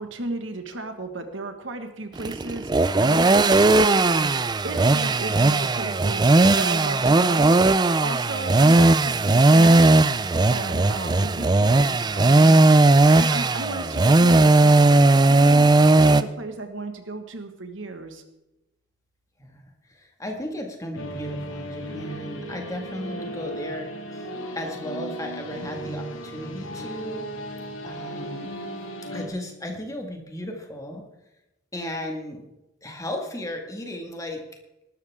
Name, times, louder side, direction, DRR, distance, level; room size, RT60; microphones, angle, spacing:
voice 1, 0.0-6.3 6.5-7.6 8.0-10.1 10.5-12.6 13.1-18.2, right 2 dB, 70° right, 6 dB, 1.6 m, -34 dB
sound 1, 2.2-16.2, right 2 dB, 20° right, 0.4 m, -17 dB
voice 2, 19.9-24.3 24.6-27.6 27.8-28.5 29.1-31.0 31.7-32.5 32.8-34.4, left 1 dB, 15° left, 2 dB, 1.9 m, -35 dB
sound 2, 21.0-29.3, right 1 dB, 80° left, 2.3 m, -36 dB
18.5 x 12.5 x 3.6 m, 0.93 s
head